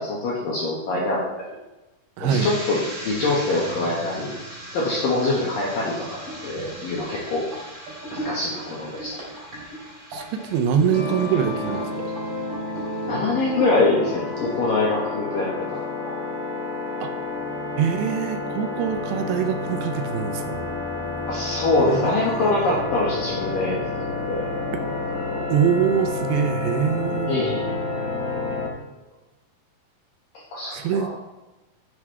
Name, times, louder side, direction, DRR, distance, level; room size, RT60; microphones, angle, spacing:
voice 1, 0.0-1.6 2.2-2.8 3.0-4.4 4.7-7.4 8.1-9.2 13.0-16.1 21.3-23.8 24.3-24.5 25.3-25.4 27.3-27.7 30.5-31.1, left 2 dB, 60° left, -5 dB, 2.6 m, -24 dB
voice 2, 2.2-2.5 10.1-12.1 17.0-17.1 17.8-20.4 21.8-22.7 25.5-27.4 30.7-31.1, right 8 dB, 80° right, 7 dB, 2.6 m, -24 dB
sound 1, 2.3-15.1 15.4-15.8 16.1-16.4, equal, 35° right, 3.3 m, -36 dB
sound 2, 10.9-28.7, left 2 dB, 40° left, 0.6 m, -30 dB
10.5 x 7.3 x 3.3 m, 1.1 s
omnidirectional pair, 5.4 m